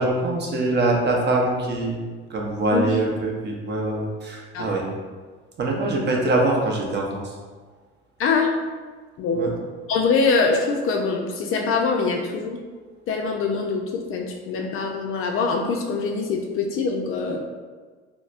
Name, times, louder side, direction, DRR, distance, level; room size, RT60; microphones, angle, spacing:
voice 1, 0.0-2.0 2.3-4.8 5.6-7.3 9.3-9.5, right 2 dB, 30° right, -1 dB, 0.7 m, -23 dB
voice 2, 9.9-12.6 13.1-17.4, left 4 dB, 40° left, 2 dB, 0.4 m, -23 dB
4.1 x 2.1 x 2.4 m, 1.4 s
hypercardioid pair, 65°, 34 cm